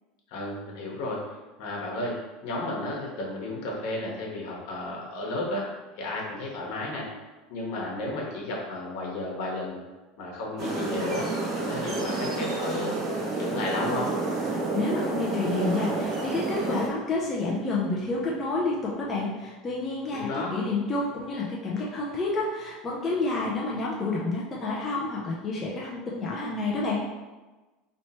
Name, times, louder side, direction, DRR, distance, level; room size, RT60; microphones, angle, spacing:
voice 1, 0.3-1.2 1.6-5.7 6.0-7.1 7.5-9.8 10.2-11.3 11.5-14.2 20.1-20.5, left 2 dB, 65° left, -2 dB, 1.2 m, -33 dB
sound 1, 10.6-16.9, right 3 dB, 35° right, 0.7 m, -29 dB
voice 2, 14.7-27.0, left 3 dB, 20° left, -5 dB, 0.5 m, -29 dB
3.1 x 3.0 x 4.3 m, 1.2 s
supercardioid pair, 155°, 0 cm